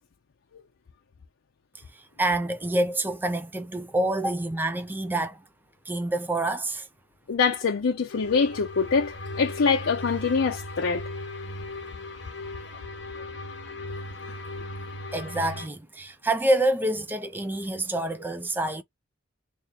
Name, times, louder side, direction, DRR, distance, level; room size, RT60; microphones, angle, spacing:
voice 1, 1.7-5.4 5.9-6.9 15.1-18.8, right 1 dB, 10° right, 0.4 m, -27 dB
voice 2, 7.3-11.0, left 5 dB, 85° left, 0.5 m, -24 dB
sound 1, 8.1-15.7, left 2 dB, 65° left, 1.2 m, -37 dB
3.5 x 2.1 x 4.1 m
head